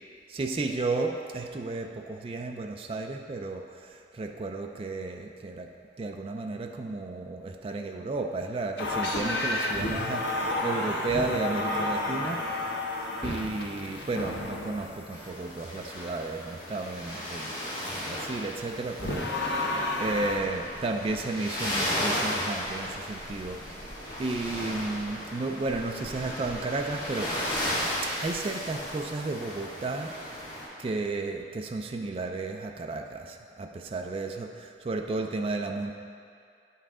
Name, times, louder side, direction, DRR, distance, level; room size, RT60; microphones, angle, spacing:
voice 1, 0.3-12.5 13.2-17.6 17.9-23.6 24.2-27.4 28.0-30.2 30.8-36.0, right 3 dB, 30° right, 3 dB, 0.3 m, -33 dB
sound 1, 8.8-15.1 19.0-20.4, left 2 dB, 80° left, 1.1 m, -31 dB
sound 2, 15.1-30.6, equal, 25° left, 2.0 m, -35 dB
9.8 x 5.5 x 3.7 m, 2.4 s
head